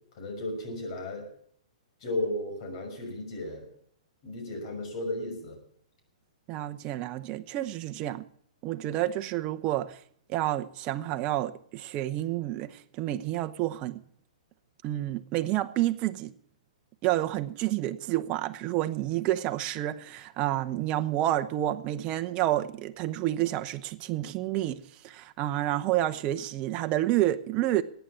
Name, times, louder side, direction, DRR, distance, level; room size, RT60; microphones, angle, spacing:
voice 1, 0.2-1.3 2.0-3.7 4.2-5.6, left 1 dB, 50° left, 6.2 m, -34 dB
voice 2, 6.5-8.2 8.6-10.0 10.3-14.0 14.8-16.3 17.0-27.8, right 14 dB, 30° right, 0.8 m, -29 dB
14.5 x 9.2 x 8.4 m
hypercardioid pair, 140°, 4 cm